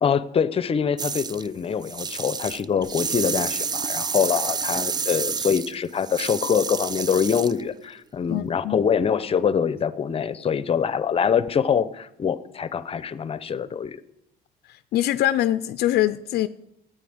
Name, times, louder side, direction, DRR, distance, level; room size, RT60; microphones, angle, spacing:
voice 1, 0.0-14.0, left 7 dB, 35° left, 15 dB, 0.8 m, -24 dB
sound 1, 1.0-1.5 1.8-7.6, right 5 dB, 25° right, 0.4 m, -29 dB
voice 2, 8.3-8.8 14.9-16.5, left 13 dB, 70° left, 13 dB, 0.5 m, -23 dB
13.0 x 9.3 x 7.9 m, 0.82 s
cardioid pair, 110°, 17 cm